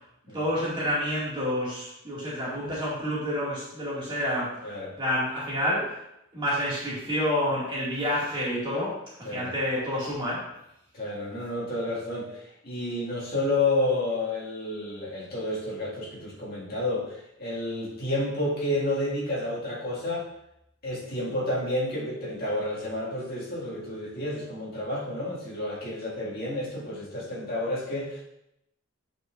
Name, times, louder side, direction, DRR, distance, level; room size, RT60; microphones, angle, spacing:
voice 1, 0.3-4.5 5.0-6.0 6.3-10.4, equal, 20° right, -7 dB, 2.1 m, -28 dB
voice 2, 4.6-4.9 9.2-9.5 10.9-20.3 20.8-28.2, left 2 dB, 45° left, -6 dB, 2.0 m, -30 dB
7.8 x 6.0 x 2.5 m, 0.82 s
head